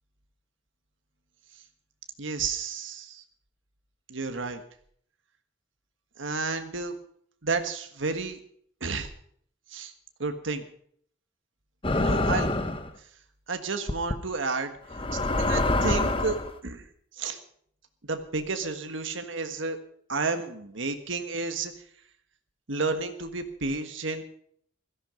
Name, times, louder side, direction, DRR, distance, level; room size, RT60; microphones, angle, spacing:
voice 1, 2.2-3.2 4.1-4.6 6.2-6.9 7.4-8.4 8.8-9.1 9.7-9.9 10.2-10.6 12.0-12.5 13.5-14.7 15.4-16.4 16.6-16.8 17.2-17.4 18.1-19.8 20.1-21.7 22.7-24.2, right 4 dB, 80° right, 7 dB, 1.5 m, -31 dB
sound 1, 11.8-12.9 13.9-14.1 14.9-16.5, left 2 dB, 25° left, 1.0 m, -25 dB
16.0 x 14.0 x 5.1 m, 0.62 s
head